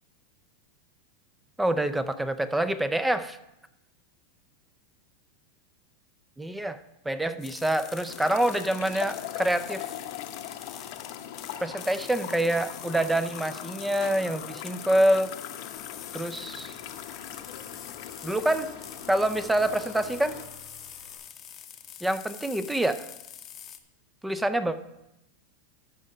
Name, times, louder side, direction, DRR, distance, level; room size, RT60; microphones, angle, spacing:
voice 1, 1.6-3.4 6.4-6.8 7.0-9.9 11.6-15.3 16.1-16.7 18.2-18.7 19.1-20.4 22.0-23.1 24.2-24.8, right 1 dB, 5° right, 12 dB, 0.5 m, -26 dB
sound 1, 7.4-23.8, left 9 dB, 30° left, 0.7 m, -45 dB
sound 2, 8.1-20.4, left 11 dB, 60° left, 0.7 m, -40 dB
Engine, 15.7-21.2, equal, 60° right, 3.7 m, -53 dB
13.0 x 4.8 x 5.5 m, 0.90 s
supercardioid pair, 145°, 0 cm